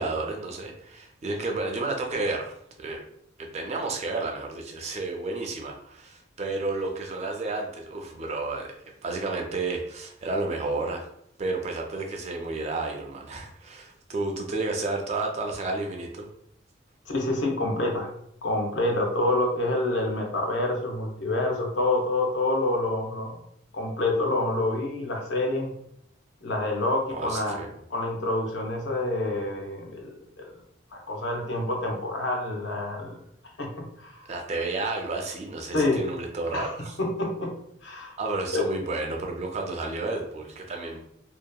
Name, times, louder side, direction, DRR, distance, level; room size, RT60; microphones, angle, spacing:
voice 1, 0.0-3.0 3.4-8.8 9.0-11.0 11.4-16.3 27.1-27.7 34.3-36.9 38.2-41.0, right 3 dB, 35° right, 2 dB, 0.3 m, -31 dB
voice 2, 17.1-18.1 18.4-23.3 23.7-25.7 26.4-27.6 27.9-30.5 30.9-33.2 33.6-34.2 35.7-36.0 36.5-36.7 37.0-37.5 37.8-38.2 38.5-38.6, left 2 dB, 65° left, 1 dB, 0.6 m, -27 dB
2.7 x 2.1 x 2.2 m, 0.74 s
head